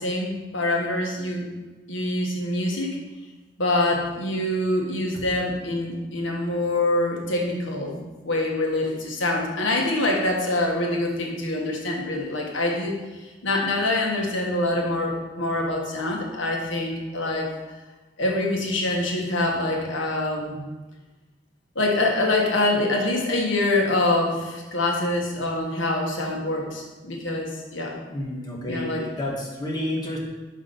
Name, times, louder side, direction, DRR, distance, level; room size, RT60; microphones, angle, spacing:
voice 1, 0.0-1.5 1.9-3.0 3.6-12.9 13.2-17.5 18.2-20.7 21.7-28.0 28.6-29.0, left 2 dB, 80° left, 0 dB, 1.3 m, -25 dB
voice 2, 28.0-30.2, left 1 dB, 20° left, -2 dB, 1.3 m, -30 dB
5.6 x 4.8 x 5.5 m, 1.2 s
head